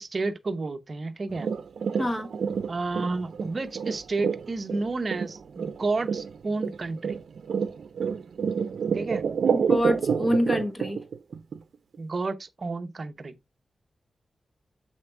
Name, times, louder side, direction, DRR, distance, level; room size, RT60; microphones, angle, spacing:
voice 1, 0.0-1.5 2.7-7.2 8.9-9.2 12.0-13.3, right 3 dB, 40° right, 0.8 m, -31 dB
sound 1, 1.3-11.6 11.9-12.0, right 6 dB, 75° right, 0.6 m, -28 dB
voice 2, 2.0-2.3 9.5-11.0, equal, 15° left, 1.2 m, -26 dB
7.5 x 4.4 x 3.3 m
wide cardioid pair, 145°, 0 cm